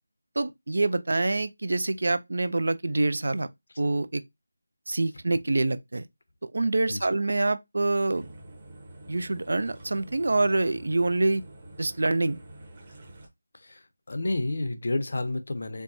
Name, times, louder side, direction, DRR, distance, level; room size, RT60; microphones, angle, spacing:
voice 1, 0.4-3.5 3.8-4.2 4.9-6.0 6.4-8.3 9.1-11.4 11.8-12.4, right 2 dB, 65° right, 0.3 m, -26 dB
sound 1, 8.1-13.3, right 1 dB, 25° right, 0.8 m, -47 dB
voice 2, 13.5-15.8, left 2 dB, 55° left, 0.6 m, -30 dB
4.4 x 2.2 x 2.6 m
figure-of-eight pair, 175°, 0 cm